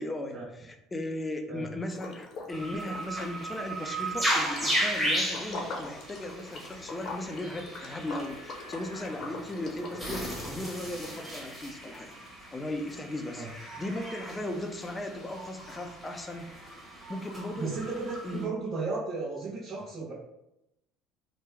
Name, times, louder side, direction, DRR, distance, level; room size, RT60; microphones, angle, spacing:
voice 1, 0.0-16.5 17.1-17.7 18.2-18.5, left 1 dB, 20° left, 5 dB, 0.5 m, -37 dB
Liquid, 1.9-2.6 2.8-10.8, left 3 dB, 50° left, 0.8 m, -42 dB
sound 1, 2.5-18.5, right 1 dB, 10° right, 1.2 m, -36 dB
voice 2, 17.6-20.1, right 3 dB, 45° right, -7 dB, 0.9 m, -34 dB
2.9 x 2.2 x 3.3 m, 0.87 s
hypercardioid pair, 80°, 0 cm